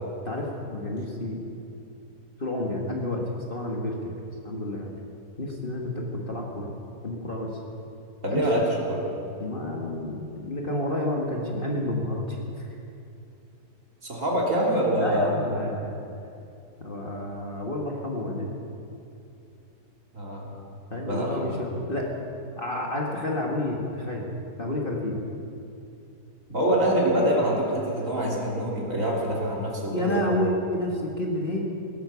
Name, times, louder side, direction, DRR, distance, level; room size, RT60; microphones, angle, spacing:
voice 1, 0.2-1.4 2.4-3.2 3.5-4.1 4.4-4.9 5.4-6.7 7.0-7.5 8.3-8.4 9.4-12.7 15.0-16.0 16.8-18.5 20.9-22.1 22.6-24.3 24.6-25.2 29.9-31.6, left 1 dB, 35° left, -1 dB, 1.7 m, -30 dB
voice 2, 8.2-9.0 14.0-15.5 20.1-20.5 20.9-21.6 26.5-30.4, right 1 dB, 50° right, -4 dB, 3.3 m, -25 dB
17.5 x 11.0 x 6.9 m, 2.7 s
omnidirectional pair, 1.7 m